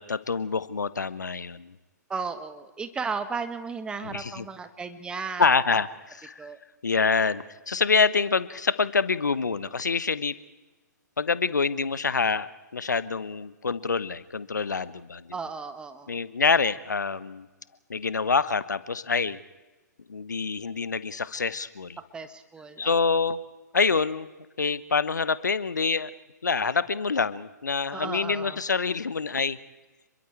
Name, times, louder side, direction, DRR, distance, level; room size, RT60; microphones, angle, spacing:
voice 1, 0.0-1.7 4.0-4.4 5.4-6.5 6.8-10.3 11.2-15.3 16.1-17.5 17.9-19.4 20.1-22.0 22.8-23.4 23.7-24.3 24.6-26.1 26.4-29.6, left 5 dB, 75° left, 16 dB, 1.2 m, -26 dB
voice 2, 2.1-5.8 6.4-6.6 15.3-16.2 22.1-23.1 27.9-28.6, right 5 dB, 10° right, 10 dB, 1.5 m, -35 dB
29.0 x 22.5 x 4.7 m, 1.2 s
figure-of-eight pair, 125°, 10 cm